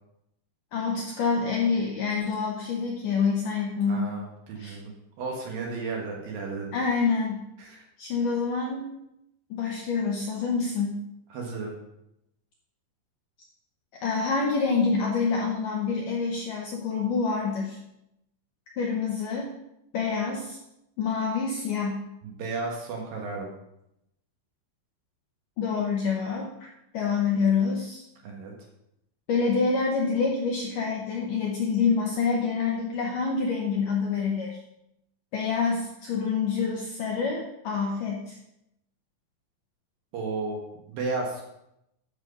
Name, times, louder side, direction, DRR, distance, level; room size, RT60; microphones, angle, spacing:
voice 1, 0.7-4.1 4.6-4.8 6.7-7.4 8.0-8.9 9.5-11.0 14.0-17.8 18.8-19.5 19.9-20.6 21.0-22.0 25.6-26.7 26.9-28.0 29.3-34.6 35.3-38.4, left 5 dB, 70° left, -1 dB, 2.1 m, -27 dB
voice 2, 3.9-4.9 5.2-6.7 7.6-7.8 11.3-11.7 22.2-23.5 28.2-28.5 40.1-40.6 40.9-41.4, right 3 dB, 60° right, 0 dB, 2.8 m, -33 dB
12.5 x 6.3 x 5.4 m, 0.83 s
omnidirectional pair, 5.2 m